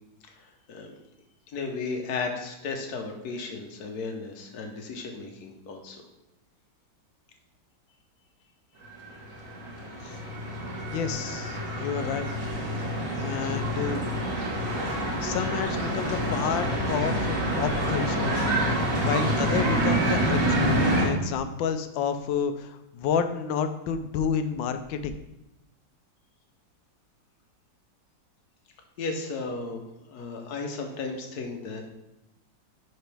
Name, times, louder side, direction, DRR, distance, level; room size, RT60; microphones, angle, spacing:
voice 1, 0.3-0.9 1.5-6.0 29.0-31.9, left 4 dB, 60° left, 3 dB, 1.4 m, -35 dB
sound 1, 9.0-21.1, right 1 dB, 45° right, 1.8 m, -27 dB
voice 2, 10.9-12.3 12.9-14.1 15.2-18.3 19.0-25.2, left 7 dB, 80° left, 9 dB, 1.3 m, -30 dB
10.5 x 4.0 x 3.4 m, 0.87 s
omnidirectional pair, 2.1 m